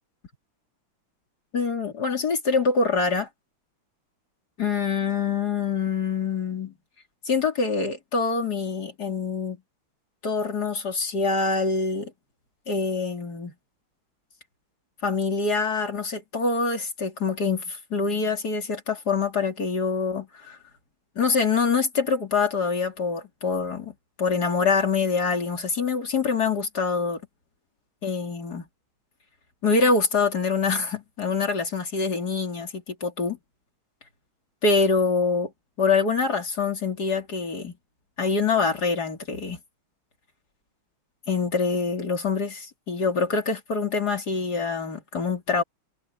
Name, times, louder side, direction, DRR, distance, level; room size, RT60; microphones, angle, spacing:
voice 1, 1.5-3.3 4.6-6.7 7.3-9.6 10.2-12.1 12.7-13.5 15.0-20.6 21.2-27.2 28.0-28.7 29.6-33.4 34.6-35.5 35.8-37.7 38.2-39.6 41.3-45.6, left 4 dB, 50° left, 3.6 m, -25 dB
omnidirectional pair, 2.3 m